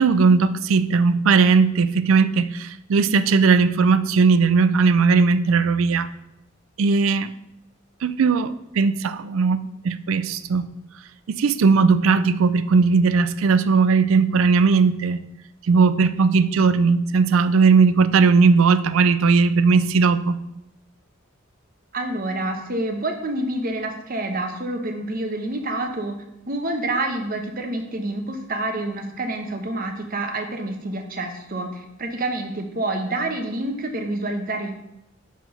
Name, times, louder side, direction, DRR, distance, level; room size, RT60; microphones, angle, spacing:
voice 1, 0.0-6.1 6.8-7.3 8.0-9.6 9.8-10.7 11.4-15.2 15.7-20.3, right 4 dB, 75° right, 13 dB, 0.4 m, -18 dB
voice 2, 21.9-26.2 26.5-34.7, right 2 dB, 45° right, 4 dB, 0.9 m, -28 dB
5.9 x 4.8 x 5.3 m, 0.85 s
head